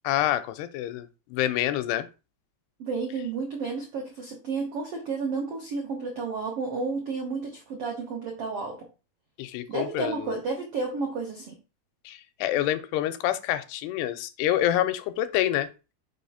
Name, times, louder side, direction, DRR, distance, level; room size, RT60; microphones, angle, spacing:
voice 1, 0.0-2.1 9.4-10.4 12.1-15.7, left 12 dB, 85° left, 2.7 m, -27 dB
voice 2, 2.8-8.8 9.7-11.5, right 4 dB, 80° right, 1.3 m, -31 dB
6.0 x 3.3 x 5.6 m
omnidirectional pair, 4.6 m